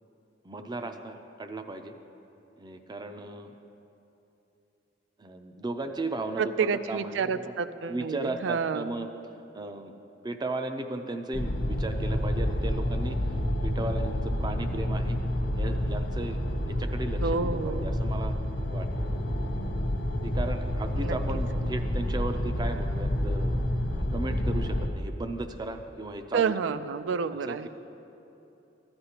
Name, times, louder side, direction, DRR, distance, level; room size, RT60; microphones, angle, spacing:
voice 1, 0.4-2.0 2.6-3.5 5.2-7.5 7.9-9.1 9.5-9.9 10.2-13.2 13.6-15.2 15.5-16.4 16.7-18.4 18.7-18.9 20.2-23.7 24.1-26.8 27.5-27.7, right 2 dB, 25° right, 7 dB, 0.5 m, -36 dB
voice 2, 6.4-8.9 17.2-18.0 20.9-21.2 26.3-27.7, right 5 dB, 80° right, 13 dB, 0.4 m, -29 dB
sound 1, 11.3-24.9, left 1 dB, 70° left, 0.7 m, -29 dB
14.0 x 9.6 x 2.9 m, 2.9 s
head